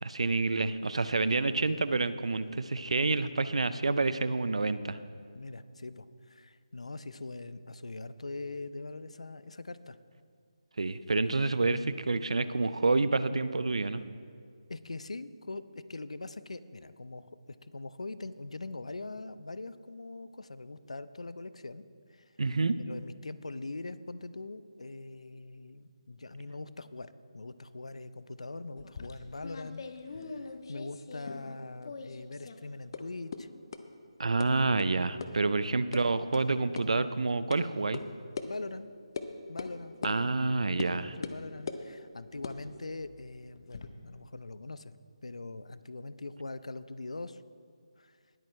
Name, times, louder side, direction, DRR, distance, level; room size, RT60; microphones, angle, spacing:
voice 1, 0.0-5.0 10.8-14.0 22.4-22.8 34.2-38.0 40.0-41.2, right 3 dB, 70° right, 13 dB, 0.5 m, -28 dB
voice 2, 5.3-10.0 14.7-21.8 22.1-22.3 22.9-29.8 30.1-33.5 38.4-38.9 39.5-40.3 40.7-45.0 45.2-47.4 48.0-48.2, left 3 dB, 80° left, 14 dB, 0.5 m, -42 dB
sound 1, 28.8-31.6 31.8-32.6 32.9-33.0 33.3-33.4 33.7-33.8 34.4-34.5 34.8-34.9 35.2-35.3 35.6-36.0 36.3-36.4 36.8-36.9 37.5-37.6 37.9-38.0 38.4-38.5 39.2-39.3 39.6-39.7 40.0-40.2 40.8-40.9 41.2-41.8 42.3-43.9, left 5 dB, 45° left, 0.7 m, -40 dB
19.5 x 8.7 x 3.2 m, 2.1 s
figure-of-eight pair, 155°, 3 cm